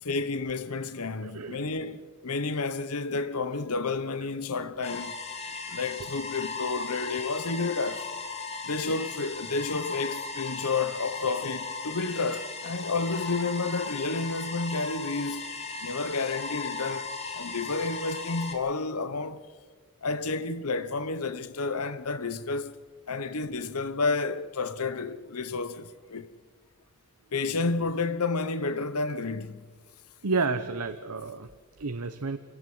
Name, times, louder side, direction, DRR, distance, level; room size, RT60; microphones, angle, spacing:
voice 1, 0.0-5.2 5.7-8.1 8.6-15.4 15.8-19.5 20.0-22.8 23.1-26.3 27.3-29.6, left 3 dB, 85° left, 1.1 m, -30 dB
voice 2, 1.2-1.6 30.2-31.5 31.8-32.4, right 4 dB, 85° right, 1.0 m, -30 dB
sound 1, 4.8-18.5, left 4 dB, 30° left, 2.8 m, -37 dB
25.5 x 17.0 x 8.0 m
head